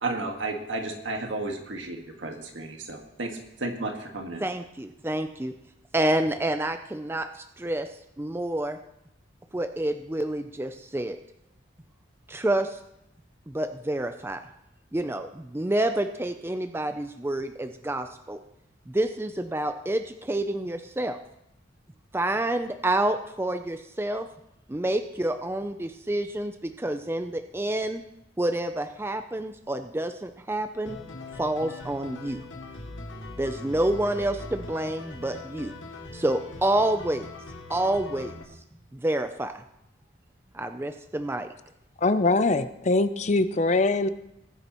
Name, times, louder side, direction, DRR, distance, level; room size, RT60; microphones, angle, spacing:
voice 1, 0.0-4.4, right 2 dB, 80° right, 3 dB, 1.7 m, -33 dB
voice 2, 4.4-5.5 5.9-7.9 8.2-8.8 9.5-11.2 12.3-12.8 13.5-14.4 14.9-18.4 18.9-21.2 22.1-24.3 24.7-28.0 28.4-31.0 31.4-32.4 33.4-35.7 36.1-37.3 37.7-38.3 38.9-39.6 40.5-41.5, right 1 dB, 10° right, 8 dB, 0.4 m, -28 dB
sound 1, 30.9-38.4, left 2 dB, 85° left, 2.1 m, -41 dB
voice 3, 42.0-44.1, left 2 dB, 35° left, 12 dB, 0.5 m, -22 dB
20.0 x 9.8 x 3.0 m, 0.81 s
head